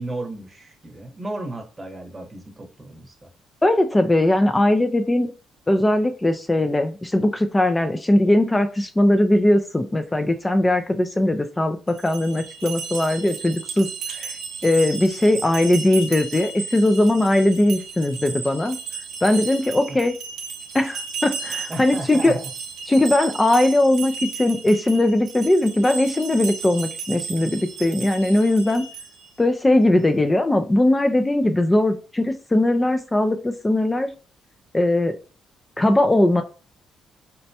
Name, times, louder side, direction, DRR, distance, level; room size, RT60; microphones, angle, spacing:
voice 1, 0.0-3.3 19.9-20.0 21.7-22.5 30.0-30.2, right 1 dB, 20° right, 3 dB, 1.0 m, -34 dB
voice 2, 3.6-5.3 5.7-14.4 14.6-18.8 19.2-20.1 20.7-22.4 22.9-28.8 29.4-34.1 34.7-35.2 35.8-36.4, left 1 dB, 15° left, 7 dB, 0.4 m, -19 dB
sound 1, 11.9-29.3, right 5 dB, 75° right, 0.5 m, -34 dB
4.1 x 2.2 x 2.7 m, 0.36 s
cardioid pair, 90°, 0 cm